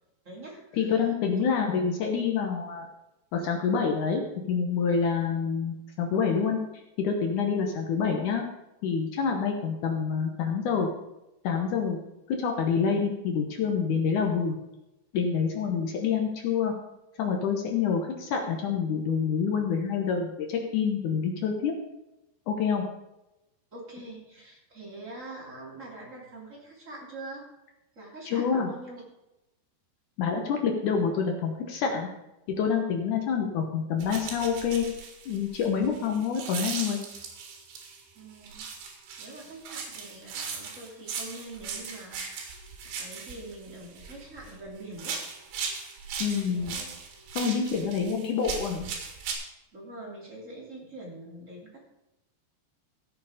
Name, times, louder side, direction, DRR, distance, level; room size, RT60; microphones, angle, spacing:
voice 1, 0.2-1.1 1.4-1.6 23.7-27.5 27.9-29.0 38.1-38.7 39.2-42.6 42.9-45.2 46.2-46.9 49.7-51.8, right 2 dB, 20° right, -3 dB, 2.4 m, -44 dB
voice 2, 0.8-2.9 3.3-6.6 7.0-8.4 8.8-10.9 11.4-12.0 12.3-14.6 15.1-16.7 17.2-21.7 22.5-22.9 28.3-28.7 30.2-32.1 32.5-34.9 35.3-37.0 46.2-46.8 47.4-48.9, left 6 dB, 75° left, 2 dB, 1.8 m, -27 dB
sound 1, 34.0-38.0 38.4-44.6 44.9-49.3, right 5 dB, 85° right, 4.2 m, -38 dB
14.5 x 7.1 x 5.0 m, 0.94 s
omnidirectional pair, 5.1 m